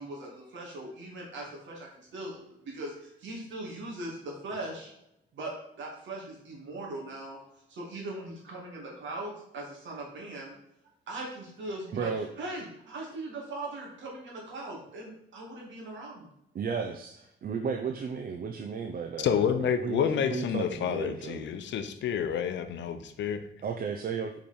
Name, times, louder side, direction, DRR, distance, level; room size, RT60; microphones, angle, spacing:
voice 1, 0.0-4.9 5.3-7.4 7.7-10.5 11.1-12.1 12.4-16.3, right 2 dB, 70° right, -2 dB, 2.5 m, -40 dB
voice 2, 11.9-12.3 16.5-21.5 23.6-24.3, right 6 dB, 50° right, 6 dB, 0.6 m, -34 dB
voice 3, 19.2-23.5, left 8 dB, 65° left, 9 dB, 0.7 m, -29 dB
5.4 x 5.0 x 4.4 m, 0.80 s
cardioid pair, 90°, 20 cm